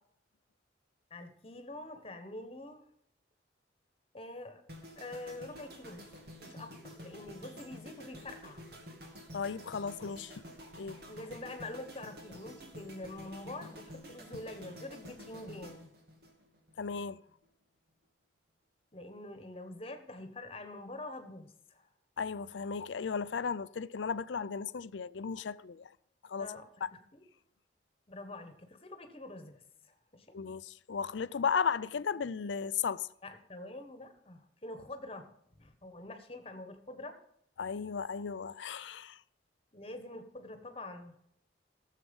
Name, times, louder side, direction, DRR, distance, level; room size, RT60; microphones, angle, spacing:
voice 1, 1.1-2.8 4.1-4.6 5.0-6.1 6.4-8.6 11.1-15.9 18.9-21.9 26.4-26.6 27.1-27.3 28.1-30.4 33.2-35.3 35.6-37.2 39.7-41.2, left 2 dB, 30° left, 1.4 m, -46 dB
sound 1, 4.7-16.9 17.1-17.4, equal, 60° right, 2.5 m, -50 dB
voice 2, 9.3-10.3 10.8-11.0 16.8-17.2 22.2-25.8 26.3-26.5 30.3-33.1 37.6-39.2, left 6 dB, 80° left, 0.5 m, -35 dB
14.0 x 7.6 x 5.4 m
head